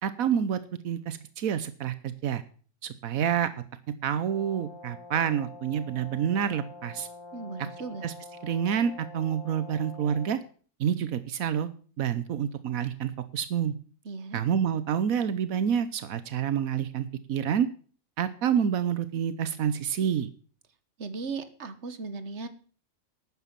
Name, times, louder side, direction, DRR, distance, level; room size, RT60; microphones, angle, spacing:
voice 1, 0.0-2.4 2.8-3.5 4.0-7.1 8.0-8.1 8.4-10.4 10.8-11.7 12.0-13.7 14.3-17.7 18.2-20.3, right 8 dB, 85° right, 13 dB, 1.3 m, -28 dB
Brass instrument, 4.2-10.5, left 2 dB, 20° left, 3.0 m, -46 dB
voice 2, 7.3-8.0 14.0-14.4 21.0-22.5, right 4 dB, 55° right, 11 dB, 1.6 m, -37 dB
12.0 x 9.5 x 7.5 m, 0.42 s
omnidirectional pair, 1.4 m